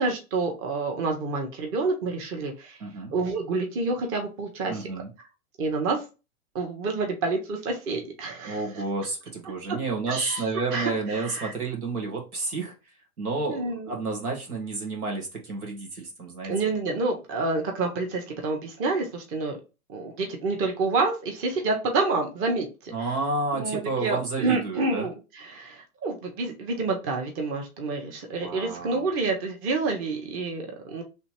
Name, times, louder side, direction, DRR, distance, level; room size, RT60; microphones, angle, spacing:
voice 1, 0.0-2.8 3.1-4.9 5.6-6.0 6.5-8.6 9.7-9.8 10.1-10.4 10.7-11.5 13.5-13.9 16.5-19.6 19.9-22.9 23.5-31.0, right 3 dB, 30° right, 2 dB, 1.2 m, -28 dB
voice 2, 2.8-3.1 4.7-5.1 8.5-12.7 13.2-16.5 22.9-25.1 28.3-29.1, right 3 dB, 90° right, 1 dB, 1.8 m, -30 dB
3.3 x 2.8 x 4.4 m, 0.29 s
hypercardioid pair, 125°, 43 cm